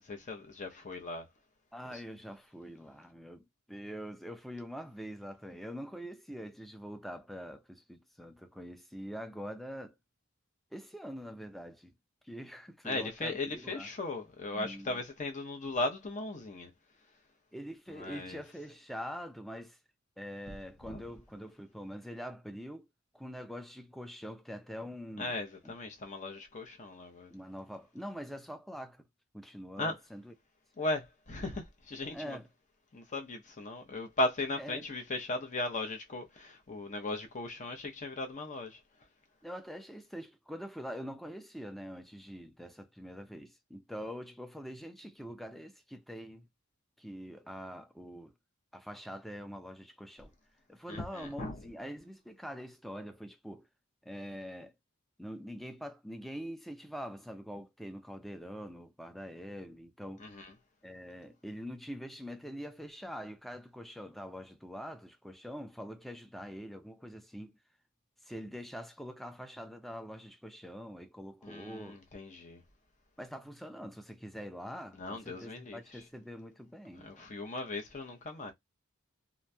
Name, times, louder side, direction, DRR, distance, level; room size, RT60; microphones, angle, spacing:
voice 1, 0.1-1.3 1.9-2.0 12.8-16.7 17.9-18.4 20.8-21.0 25.2-27.3 29.8-29.9 30.8-32.4 32.9-38.8 50.9-51.6 60.2-60.5 71.4-72.6 75.0-75.8 76.9-78.5, left 2 dB, 35° left, 0.7 m, -37 dB
voice 2, 1.7-10.0 10.7-11.9 12.2-13.9 14.5-15.0 17.5-19.8 20.2-22.9 23.1-25.4 25.6-25.7 27.3-29.0 29.3-30.3 32.1-32.5 34.6-34.9 39.4-46.5 47.0-48.3 48.7-50.3 50.7-53.7 54.0-54.7 55.2-60.3 60.8-67.5 68.2-72.0 73.2-77.4, equal, ahead, 0.4 m, -44 dB
2.9 x 2.5 x 2.2 m
head